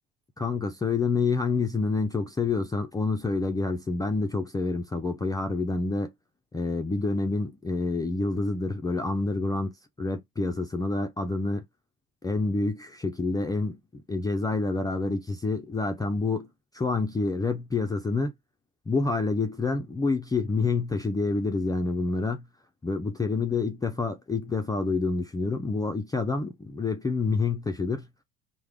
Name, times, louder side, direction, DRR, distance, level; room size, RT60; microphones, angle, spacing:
voice 1, 0.4-6.1 6.5-11.7 12.2-16.5 16.7-18.3 18.9-22.5 22.8-28.1, left 3 dB, 10° left, 0.4 m, -28 dB
3.3 x 2.1 x 3.5 m
hypercardioid pair, 80°, 31 cm